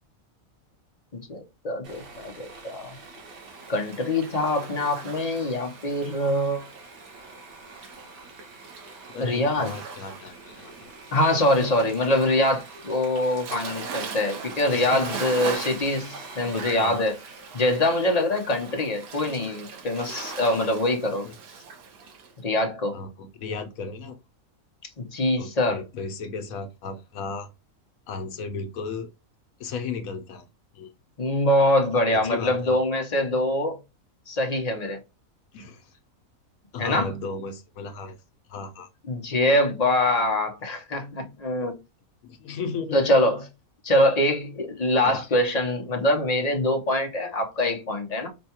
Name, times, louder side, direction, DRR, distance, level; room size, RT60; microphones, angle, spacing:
voice 1, 1.1-3.0 3.7-6.7 9.2-9.7 11.1-17.1 17.5-21.3 22.4-22.9 25.0-25.8 31.2-33.8 34.3-35.0 36.8-37.1 39.1-41.8 42.9-43.5 43.8-48.3, left 1 dB, 35° left, 0.7 m, -24 dB
Sawing, 1.8-18.3, right 3 dB, 70° right, 1.6 m, -47 dB
Waves surf, 2.9-22.3, right 5 dB, 85° right, 1.3 m, -40 dB
voice 2, 9.1-10.9 14.7-15.2 16.5-17.0 21.2-21.3 22.9-24.2 25.4-27.5 28.1-29.1 29.6-30.5 30.7-30.9 32.1-32.8 35.5-36.0 36.7-38.2 38.5-38.9 42.2-43.0 45.0-45.4, left 4 dB, 75° left, 1.0 m, -35 dB
5.3 x 2.2 x 2.8 m
omnidirectional pair, 1.5 m